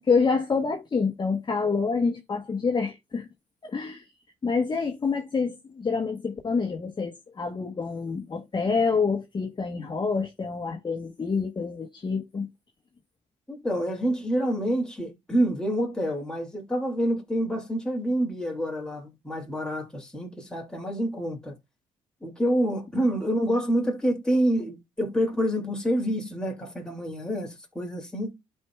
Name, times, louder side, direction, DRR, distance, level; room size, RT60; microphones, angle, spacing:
voice 1, 0.0-3.3 3.6-4.0 4.4-12.5, left 4 dB, 35° left, 1.2 m, -27 dB
voice 2, 13.5-21.5 22.2-28.3, equal, 5° left, 2.6 m, -27 dB
12.0 x 4.6 x 2.3 m
supercardioid pair, 70°, 14 cm